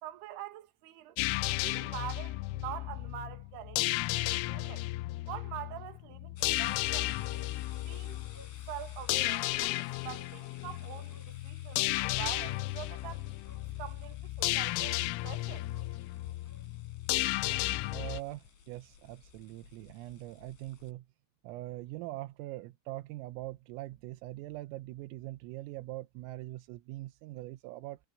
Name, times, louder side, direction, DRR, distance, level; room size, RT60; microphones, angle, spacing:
voice 1, 0.0-1.2 1.6-4.9 5.3-7.2 7.9-8.2 8.7-13.3 13.8-15.7, right 12 dB, 60° right, 3.5 m, -45 dB
sound 1, 1.2-18.2, left 19 dB, 90° left, 3.3 m, -34 dB
sound 2, 6.4-20.9, left 7 dB, 65° left, 6.9 m, -56 dB
Bark, 7.3-7.6 7.9-8.0 8.3-8.6 9.2-9.5 10.1-10.4 11.0-11.3 12.9-13.0 13.4-13.7 14.0-14.2 14.8-15.1 15.6-16.7 17.0-17.1, right 1 dB, 5° right, 3.8 m, -60 dB
voice 2, 17.9-21.1 21.4-28.0, right 17 dB, 85° right, 3.5 m, -42 dB
omnidirectional pair, 5.8 m